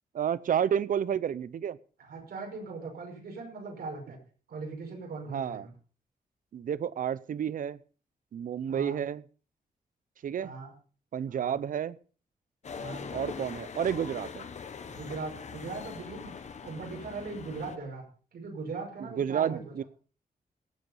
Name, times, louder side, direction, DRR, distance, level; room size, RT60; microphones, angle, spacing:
voice 1, 0.1-1.8 5.3-5.7 6.5-7.8 8.3-9.2 10.2-10.5 11.1-12.0 13.1-14.5 19.1-19.8, right 9 dB, 60° right, 0.6 m, -30 dB
voice 2, 2.0-4.2 4.5-5.7 8.7-9.0 10.4-10.7 11.3-11.6 12.7-13.0 14.8-16.3 16.6-18.0 18.3-19.9, right 4 dB, 90° right, 6.0 m, -39 dB
sound 1, 12.6-17.8, left 6 dB, 50° left, 1.2 m, -42 dB
18.0 x 8.5 x 5.4 m
wide cardioid pair, 175°, 16 cm